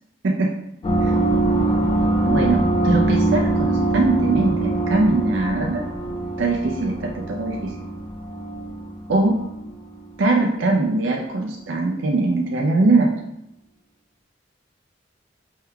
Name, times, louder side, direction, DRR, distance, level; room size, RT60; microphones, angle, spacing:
sound 1, 0.8-10.0, right 2 dB, 30° left, 0.4 m, -23 dB
voice 1, 2.3-5.8 6.4-7.7 9.1-9.4 10.2-13.1, right 2 dB, 80° right, 0 dB, 0.4 m, -21 dB
3.6 x 2.3 x 4.5 m, 0.81 s
head